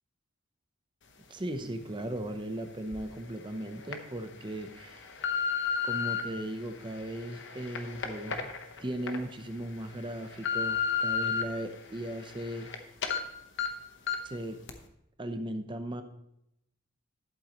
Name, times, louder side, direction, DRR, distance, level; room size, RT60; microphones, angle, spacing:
voice 1, 1.3-5.1 5.8-8.5 8.8-12.8 14.2-14.6 15.2-16.0, right 1 dB, 25° right, 7 dB, 0.7 m, -37 dB
sound 1, 2.9-3.0 3.6-4.0 4.6-6.2 6.9-9.2 9.6-9.7 10.1-11.4 11.9-12.8 13.0-13.2 13.6-13.7 14.1-14.3 14.7-14.8, left 6 dB, 55° left, 1.0 m, -32 dB
11.5 x 8.2 x 3.0 m, 0.81 s
head